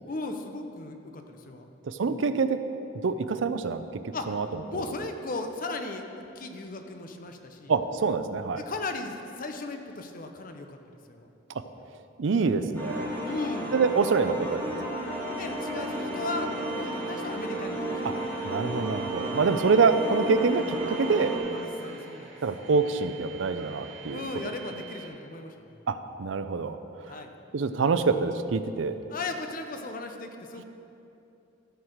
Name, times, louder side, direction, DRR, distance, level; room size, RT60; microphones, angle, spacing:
voice 1, 0.1-1.7 2.1-2.2 4.1-4.3 4.7-7.7 8.6-10.8 11.1-11.3 13.2-13.8 15.4-18.0 19.3-19.5 21.5-22.4 24.1-25.8 27.1-27.3 29.1-30.6, left 2 dB, 45° left, 5 dB, 0.7 m, -37 dB
voice 2, 1.8-2.6 3.0-3.8 4.3-4.5 4.7-4.8 7.7-8.6 11.5-11.6 12.2-13.1 13.7-14.7 18.4-21.3 22.4-24.2 25.9-27.2 27.5-29.0, right 4 dB, 90° right, 11 dB, 0.5 m, -26 dB
sound 1, 12.7-21.4, right 1 dB, 10° left, 2.3 m, -33 dB
sound 2, 15.1-25.1, right 7 dB, 70° right, 2.1 m, -46 dB
13.0 x 4.7 x 6.5 m, 2.7 s
head